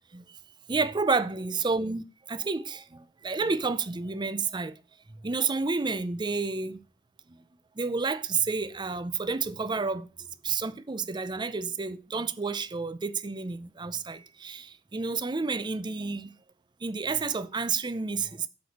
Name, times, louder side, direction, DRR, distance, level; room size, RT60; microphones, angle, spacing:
voice 1, 0.7-4.8 5.2-6.8 7.3-7.4 7.8-16.3 16.8-18.5, right 4 dB, 25° right, 0.5 m, -30 dB
8.1 x 4.9 x 6.6 m
head